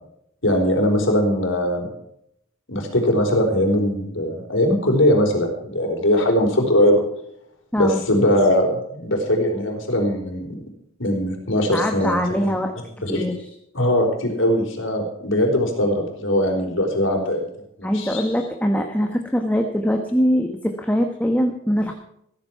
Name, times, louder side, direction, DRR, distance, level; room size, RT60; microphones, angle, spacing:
voice 1, 0.4-1.9 2.7-7.0 7.8-10.6 11.0-12.5 13.0-13.2 13.7-17.5 17.8-18.2, left 1 dB, 65° left, 2 dB, 4.4 m, -20 dB
voice 2, 11.7-12.7 13.1-13.5 17.8-21.9, equal, 5° left, 3 dB, 1.2 m, -22 dB
15.0 x 14.5 x 4.7 m, 0.74 s
head